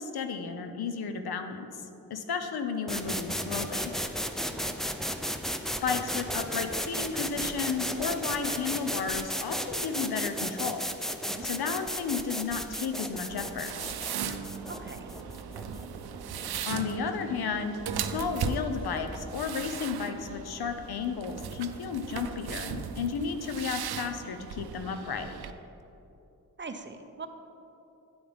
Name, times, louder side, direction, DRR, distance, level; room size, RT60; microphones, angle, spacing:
voice 1, 0.0-1.7 2.1-3.9 5.8-10.8 11.4-13.7 16.7-25.3, left 5 dB, 80° left, 7 dB, 0.7 m, -33 dB
sound 1, 2.9-16.6, equal, ahead, 0.5 m, -34 dB
sound 2, 13.3-25.5, right 7 dB, 90° right, 0.5 m, -37 dB
voice 2, 14.7-15.1 26.6-27.3, right 4 dB, 30° right, 6 dB, 0.7 m, -41 dB
9.0 x 8.7 x 3.5 m, 2.9 s
cardioid pair, 60°, 37 cm